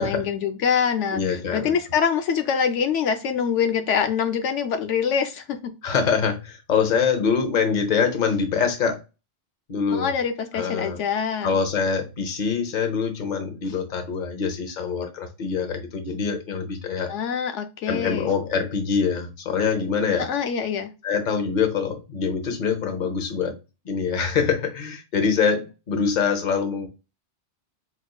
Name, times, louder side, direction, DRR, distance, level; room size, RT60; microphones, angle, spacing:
voice 1, 0.0-5.7 9.9-11.5 17.1-18.3 20.2-20.9, left 7 dB, 85° left, 1.0 m, -25 dB
voice 2, 1.1-1.7 5.8-9.0 9.7-10.1 10.5-11.0 11.4-17.1 17.9-20.3 21.0-23.5 23.8-26.9, left 6 dB, 45° left, 0.9 m, -24 dB
5.0 x 3.0 x 2.3 m
omnidirectional pair, 1.2 m